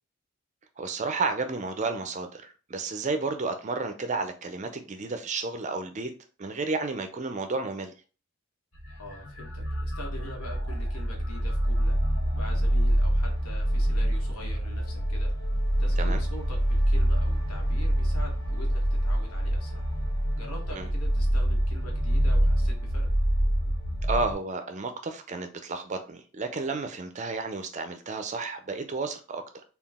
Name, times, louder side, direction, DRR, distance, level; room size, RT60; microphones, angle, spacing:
voice 1, 0.8-6.1 6.4-7.9 16.0-16.2 20.7-20.9 24.1-29.6, right 3 dB, 35° right, 7 dB, 0.4 m, -32 dB
sound 1, 8.7-24.3, equal, 65° left, 1.3 m, -26 dB
voice 2, 9.0-12.0 12.3-15.3 15.8-19.9 20.3-23.1, left 1 dB, 85° left, 1 dB, 1.3 m, -44 dB
3.9 x 2.4 x 3.5 m, 0.36 s
head